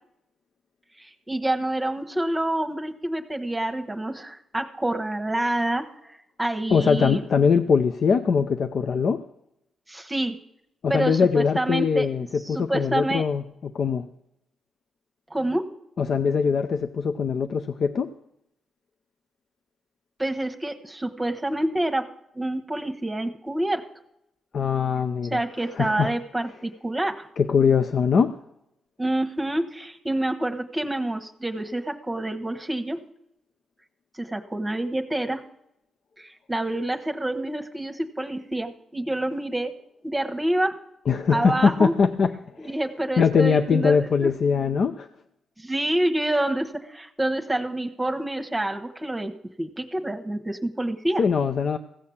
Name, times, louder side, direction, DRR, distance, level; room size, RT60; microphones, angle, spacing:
voice 1, 1.0-7.2 9.9-10.3 10.9-12.1 12.4-13.2 15.3-15.7 20.2-22.1 22.3-23.8 25.3-27.3 29.0-33.0 34.2-35.4 36.2-39.7 40.0-40.8 41.3-41.9 42.6-44.3 45.6-51.2, right 1 dB, 15° right, 1.2 m, -27 dB
voice 2, 6.7-9.2 10.8-14.0 16.0-18.1 24.5-26.1 27.4-28.3 41.1-42.3 42.6-42.7 43.2-45.1 51.2-51.8, left 6 dB, 60° left, 0.6 m, -22 dB
15.5 x 6.5 x 7.2 m
supercardioid pair, 55°, 0 cm